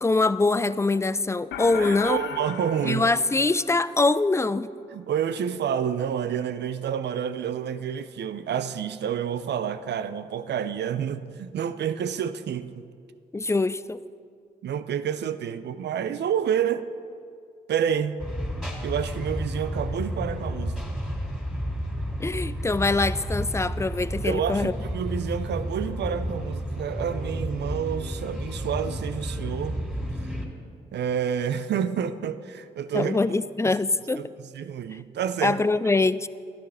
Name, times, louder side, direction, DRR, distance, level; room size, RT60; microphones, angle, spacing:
voice 1, 0.0-2.2 2.8-4.7 13.3-14.0 22.2-24.7 32.9-34.2 35.4-36.3, left 3 dB, 15° left, 0.4 m, -23 dB
sound 1, 1.5-4.1, left 12 dB, 75° left, 0.4 m, -37 dB
voice 2, 1.7-3.1 4.9-12.8 14.6-16.8 17.7-18.2 18.8-20.8 24.2-29.8 30.9-33.2 33.6-33.8 34.2-34.3 34.5-35.6, right 8 dB, 65° right, 0.6 m, -29 dB
sound 2, 18.2-30.5, equal, ahead, 3.5 m, -31 dB
11.5 x 11.5 x 4.3 m
supercardioid pair, 50°, 19 cm